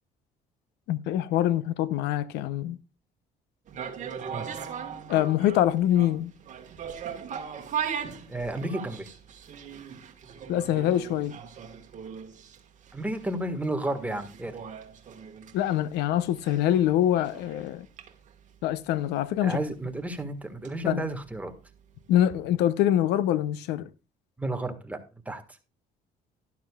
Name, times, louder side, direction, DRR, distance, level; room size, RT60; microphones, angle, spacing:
voice 1, 0.9-2.8 5.1-6.3 10.5-11.3 15.5-17.9 18.6-19.6 20.8-21.1 22.1-23.9, left 12 dB, 85° left, 0.7 m, -24 dB
sound 1, 3.7-21.8 22.1-22.2, right 7 dB, 45° right, 1.5 m, -39 dB
voice 2, 8.3-9.1 12.9-14.6 19.4-21.5 24.4-25.0 25.2-25.4, right 1 dB, 10° right, 1.6 m, -32 dB
11.5 x 11.5 x 2.3 m
cardioid pair, 110°, 17 cm